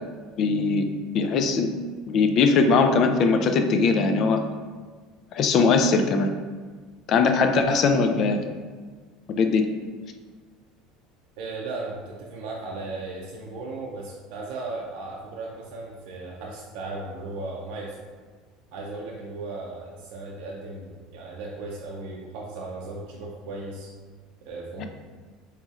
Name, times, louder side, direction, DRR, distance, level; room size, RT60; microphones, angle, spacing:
voice 1, 0.4-0.9 1.1-1.7 2.1-4.4 5.3-6.3 7.1-8.4 9.3-9.7 24.8-24.9, left 4 dB, 45° left, 6 dB, 0.3 m, -20 dB
voice 2, 11.4-18.1 18.7-23.9 24.4-24.8, right 3 dB, 75° right, -3 dB, 0.5 m, -36 dB
4.1 x 3.0 x 2.4 m, 1.5 s
supercardioid pair, 125°, 0 cm